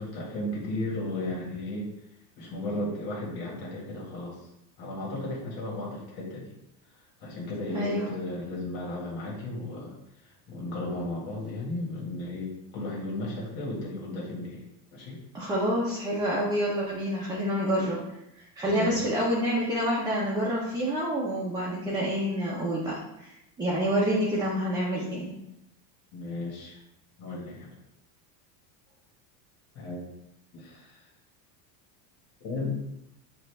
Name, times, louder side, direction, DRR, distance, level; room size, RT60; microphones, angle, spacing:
voice 1, 0.0-1.9 2.4-4.5 4.8-6.5 7.2-9.9 10.2-14.6 14.9-15.2 18.7-19.0 24.0-24.1 26.1-26.8 27.2-27.8 29.7-30.0 30.5-31.0 32.4-32.8, left 2 dB, 75° left, -3 dB, 1.6 m, -34 dB
voice 2, 7.7-8.1 15.3-18.0 18.6-25.3, equal, 10° right, -6 dB, 0.6 m, -28 dB
6.3 x 2.6 x 3.3 m, 0.85 s
supercardioid pair, 140°, 49 cm